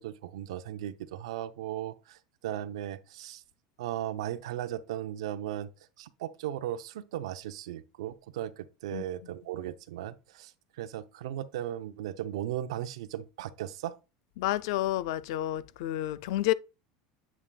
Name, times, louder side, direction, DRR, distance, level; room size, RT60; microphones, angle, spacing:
voice 1, 0.0-3.4 3.8-5.7 6.0-10.5 10.8-14.0, right 12 dB, 90° right, 0.5 m, -37 dB
voice 2, 14.4-16.5, left 15 dB, 70° left, 0.3 m, -30 dB
8.1 x 5.8 x 2.2 m
supercardioid pair, 150°, 3 cm